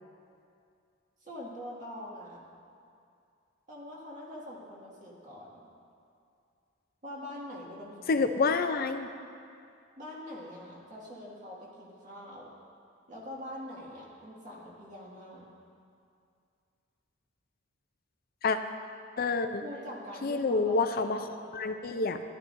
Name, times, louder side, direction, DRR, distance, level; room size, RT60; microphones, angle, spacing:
voice 1, 1.2-2.4 3.7-5.6 7.0-8.4 10.0-12.5 13.1-15.5 19.6-21.6, left 1 dB, 40° right, -5 dB, 2.0 m, -44 dB
voice 2, 8.1-9.1 18.4-18.6 19.2-19.6 20.2-21.2 21.5-22.2, left 4 dB, 45° left, 8 dB, 0.5 m, -28 dB
14.0 x 11.5 x 2.6 m, 2.4 s
head